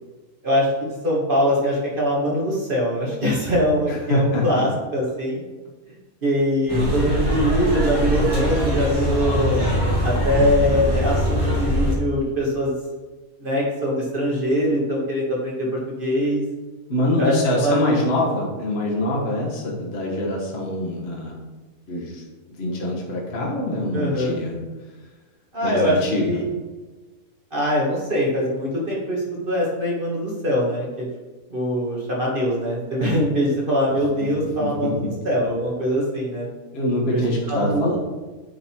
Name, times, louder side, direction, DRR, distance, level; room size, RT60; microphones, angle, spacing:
voice 1, 0.4-5.4 6.2-9.6 10.0-12.7 13.4-16.4 17.2-18.0 23.9-24.4 25.5-26.4 27.5-31.1 31.5-36.5 37.1-37.2 37.5-37.9, equal, 35° right, -4 dB, 1.9 m, -22 dB
voice 2, 3.9-4.6 16.9-21.3 21.9-22.2 22.5-24.6 25.6-26.4 34.6-35.1 36.7-38.0, left 1 dB, 45° left, -3 dB, 1.5 m, -24 dB
sound 1, 6.7-11.9, equal, 15° right, 2.3 m, -22 dB
9.5 x 4.0 x 4.5 m, 1.2 s
omnidirectional pair, 1.5 m